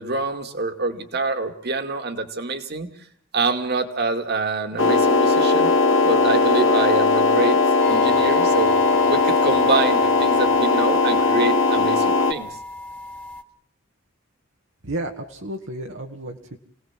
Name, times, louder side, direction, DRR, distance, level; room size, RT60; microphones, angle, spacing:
voice 1, 0.0-2.9 3.3-5.7 6.0-7.6 7.9-8.8 9.1-12.5, right 3 dB, 55° right, 7 dB, 2.5 m, -26 dB
sound 1, 4.8-12.3, left 3 dB, 70° left, 2.1 m, -18 dB
sound 2, 7.8-13.4, left 2 dB, 5° left, 1.8 m, -34 dB
voice 2, 14.8-16.6, right 1 dB, 70° right, 2 dB, 2.0 m, -32 dB
29.0 x 18.5 x 7.6 m, 0.63 s
head